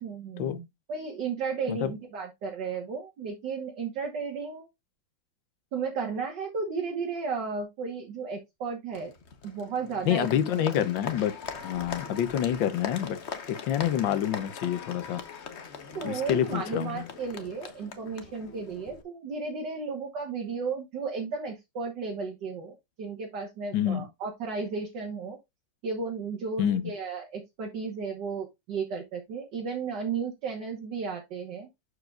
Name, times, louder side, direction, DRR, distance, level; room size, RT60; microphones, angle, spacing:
voice 1, 0.0-4.7 5.7-9.1 9.4-10.9 16.0-25.4 25.8-31.7, right 5 dB, 65° right, 2.1 m, -34 dB
Applause, 8.9-19.0, left 6 dB, 45° left, 1.0 m, -41 dB
voice 2, 10.1-11.3 11.6-13.2 13.5-15.2 16.0-17.0 23.7-24.1 26.6-26.9, left 10 dB, 75° left, 1.5 m, -27 dB
11.5 x 4.8 x 2.4 m
omnidirectional pair, 2.1 m